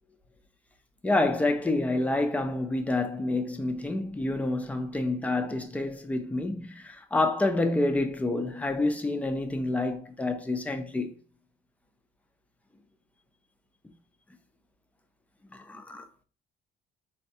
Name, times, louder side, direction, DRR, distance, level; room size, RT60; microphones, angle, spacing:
voice 1, 1.0-11.1 15.5-16.1, left 2 dB, 10° left, 0.5 m, -28 dB
4.0 x 2.3 x 2.7 m
cardioid pair, 110°, 17 cm